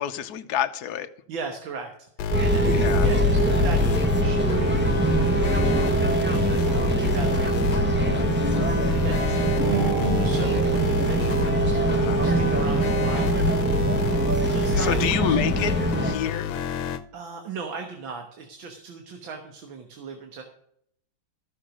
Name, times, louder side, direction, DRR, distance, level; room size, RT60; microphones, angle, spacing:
voice 1, 0.0-1.1 2.7-3.1 11.9-12.2 14.8-15.7 16.0-16.5, left 10 dB, 60° left, 1.2 m, -27 dB
voice 2, 1.3-1.9 2.4-3.8 4.1-5.3 5.6-7.7 8.5-9.9 10.1-13.4 13.9-15.4 17.1-20.4, right 4 dB, 85° right, 2.1 m, -38 dB
sound 1, 2.2-17.0, left 8 dB, 80° left, 1.5 m, -30 dB
sound 2, 2.3-16.1, right 1 dB, 10° right, 0.5 m, -23 dB
sound 3, 9.6-12.3, right 6 dB, 50° right, 1.2 m, -31 dB
14.5 x 6.7 x 6.3 m
omnidirectional pair, 2.1 m